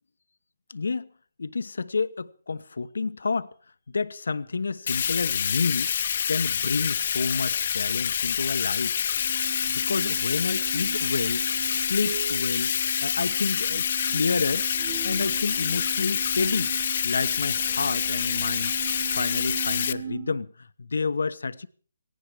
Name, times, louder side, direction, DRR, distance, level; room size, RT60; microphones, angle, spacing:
voice 1, 0.7-1.1 1.4-3.5 3.9-5.9 6.3-9.1 9.7-11.4 11.7-12.7 13.0-14.7 15.0-16.7 17.0-18.8 19.1-21.7, left 4 dB, 80° left, 1.1 m, -29 dB
Bathtub (filling or washing), 4.9-19.9, left 8 dB, 50° left, 0.9 m, -27 dB
sound 1, 9.2-20.4, right 8 dB, 65° right, 3.6 m, -39 dB
17.5 x 17.0 x 4.9 m
hypercardioid pair, 155°, 0 cm